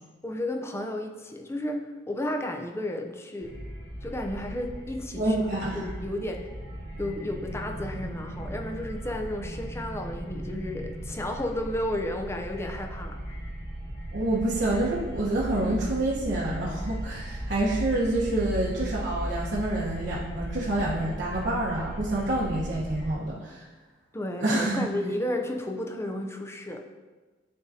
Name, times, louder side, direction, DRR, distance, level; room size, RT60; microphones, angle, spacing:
voice 1, 0.2-3.5 4.0-5.4 5.7-6.5 7.0-13.2 24.1-26.8, left 1 dB, 15° left, 3 dB, 0.5 m, -32 dB
sound 1, 3.4-23.1, right 1 dB, 30° left, 2.0 m, -37 dB
voice 2, 5.2-5.8 14.1-23.6 24.4-24.9, right 1 dB, 65° right, -6 dB, 1.1 m, -27 dB
11.0 x 3.8 x 2.7 m, 1.3 s
head